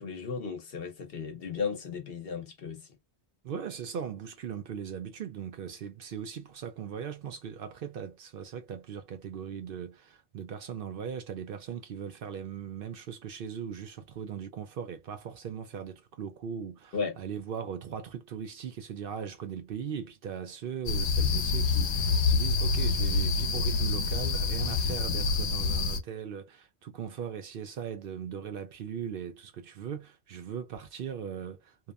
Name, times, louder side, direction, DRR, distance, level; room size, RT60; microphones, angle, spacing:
voice 1, 0.0-2.8 16.9-17.2, left 5 dB, 65° left, 1.0 m, -35 dB
voice 2, 3.4-31.9, right 8 dB, 65° right, 0.7 m, -39 dB
sound 1, 20.9-26.0, left 4 dB, 85° left, 0.9 m, -27 dB
2.8 x 2.1 x 2.3 m
omnidirectional pair, 1.1 m